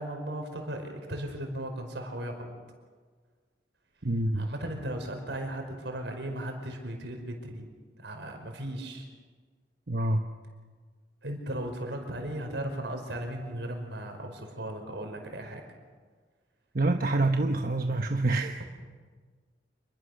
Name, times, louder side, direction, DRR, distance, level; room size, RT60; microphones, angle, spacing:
voice 1, 0.0-2.5 4.3-7.7 8.0-9.1 11.2-15.6, right 1 dB, 80° right, 4 dB, 5.0 m, -36 dB
voice 2, 4.0-4.5 9.9-10.2 16.7-18.6, right 2 dB, 55° right, 4 dB, 1.1 m, -26 dB
28.0 x 22.0 x 6.6 m, 1.5 s
head